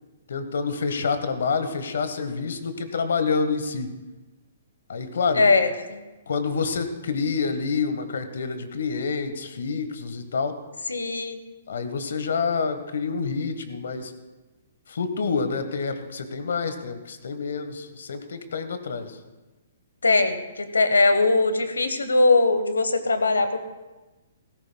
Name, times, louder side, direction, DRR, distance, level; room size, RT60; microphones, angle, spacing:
voice 1, 0.3-3.9 4.9-5.5 6.3-10.6 11.7-14.1 14.9-19.2, left 5 dB, 70° left, 9 dB, 1.3 m, -27 dB
voice 2, 5.3-6.0 10.9-11.4 20.0-23.6, left 3 dB, 90° left, 10 dB, 1.1 m, -21 dB
17.0 x 14.5 x 2.3 m, 1.1 s
hypercardioid pair, 130°, 0 cm